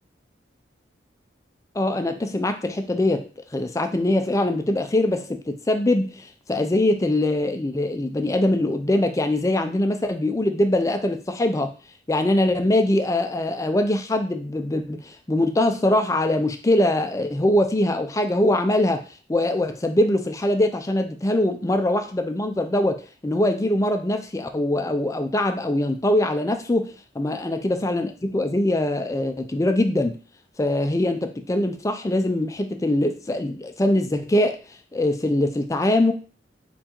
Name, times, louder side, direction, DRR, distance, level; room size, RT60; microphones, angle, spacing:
voice 1, 1.7-3.3 3.5-11.7 12.1-19.0 19.3-30.2 30.6-34.6 34.9-36.1, left 1 dB, 15° left, 7 dB, 0.4 m, -22 dB
4.3 x 3.8 x 2.9 m, 0.37 s
head